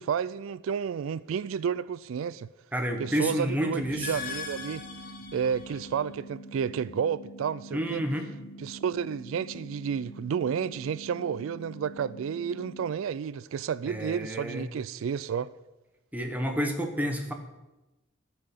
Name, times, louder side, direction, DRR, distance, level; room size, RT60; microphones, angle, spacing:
voice 1, 0.0-2.5 3.0-4.8 5.3-8.1 8.6-15.5, right 7 dB, 85° right, 0.3 m, -31 dB
voice 2, 2.7-4.1 7.7-8.3 13.9-14.7 16.1-17.3, equal, 10° right, 1.2 m, -30 dB
sound 1, 2.9-12.9, right 1 dB, 80° left, 2.1 m, -46 dB
sound 2, 3.8-6.1, left 6 dB, 45° left, 1.2 m, -40 dB
12.5 x 5.8 x 8.2 m
head